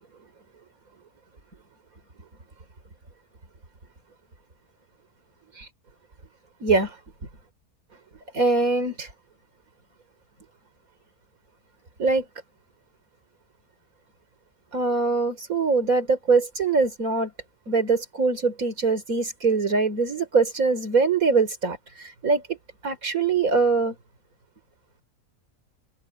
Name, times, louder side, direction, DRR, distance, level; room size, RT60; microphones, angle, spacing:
voice 1, 6.6-7.0 8.3-9.1 12.0-12.3 14.7-17.3 17.7-22.6 22.8-24.0, right 4 dB, 65° right, 4.5 m, -23 dB
omnidirectional pair, 1.6 m